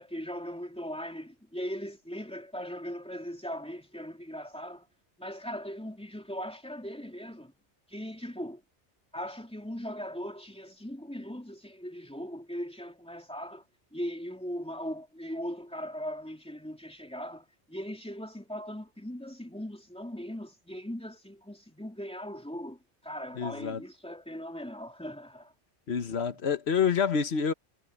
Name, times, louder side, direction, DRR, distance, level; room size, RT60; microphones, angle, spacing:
voice 1, 0.0-4.9 5.2-7.5 7.9-8.6 9.1-13.6 13.9-25.5 25.9-26.0, equal, 5° left, 3.4 m, -39 dB
voice 2, 23.4-23.8 25.9-27.5, left 6 dB, 65° left, 1.3 m, -27 dB
omnidirectional pair, 1.2 m